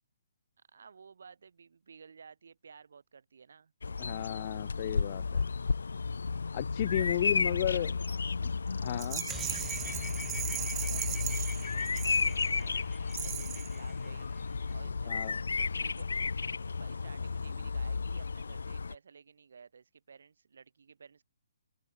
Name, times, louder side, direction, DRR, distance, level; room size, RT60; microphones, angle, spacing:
voice 1, 0.7-4.3 7.0-7.9 10.3-12.9 13.2-14.3 14.7-15.1 15.8-16.1 16.7-21.2, right 6 dB, 70° right, 5.8 m, -55 dB
Bird vocalization bird call bird song, 3.8-18.9, left 4 dB, 80° left, 0.8 m, -33 dB
voice 2, 4.0-5.4 6.5-7.9 8.4-8.5 8.8-9.2 15.1-15.4, left 13 dB, 40° left, 1.5 m, -33 dB
Rattle, 9.0-12.6 13.1-13.8, right 15 dB, 20° right, 0.5 m, -38 dB
sound 1, 9.3-14.9, left 7 dB, 10° left, 1.6 m, -47 dB
open air
hypercardioid pair, 145°, 0 cm